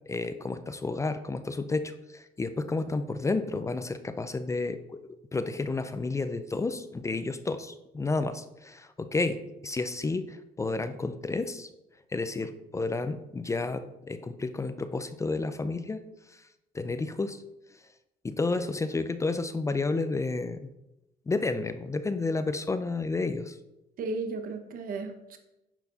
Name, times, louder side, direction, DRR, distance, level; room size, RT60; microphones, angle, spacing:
voice 1, 0.1-5.0 5.3-11.7 12.1-16.0 16.7-17.4 18.2-20.7 21.3-23.6, left 3 dB, 15° left, 11 dB, 0.4 m, -31 dB
voice 2, 24.0-25.4, right 3 dB, 55° right, 6 dB, 1.0 m, -34 dB
10.0 x 4.5 x 4.0 m, 0.92 s
cardioid pair, 110°, 17 cm